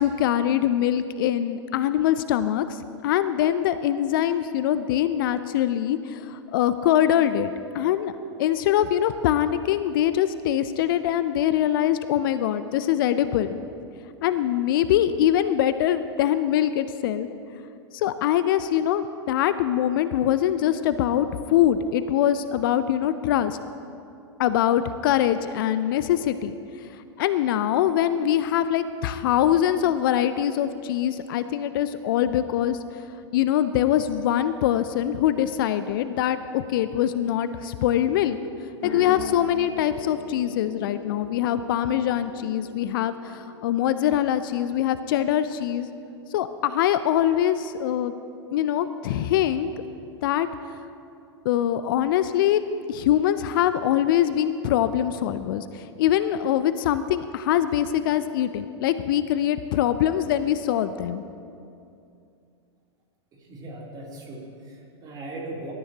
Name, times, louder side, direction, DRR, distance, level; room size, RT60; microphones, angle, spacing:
voice 1, 0.0-8.1 8.4-13.6 14.2-17.3 17.9-23.6 24.4-26.5 27.2-32.8 33.3-38.4 38.8-45.9 46.3-48.1 48.5-49.7 50.2-50.5 51.4-52.6 52.9-61.2, left 11 dB, 50° left, 12 dB, 0.6 m, -23 dB
sound 1, 38.8-46.8, left 4 dB, 25° left, 1.9 m, -39 dB
voice 2, 63.5-65.7, right 2 dB, 30° right, -2 dB, 3.3 m, -38 dB
23.5 x 13.0 x 2.9 m, 2.5 s
figure-of-eight pair, 95°, 14 cm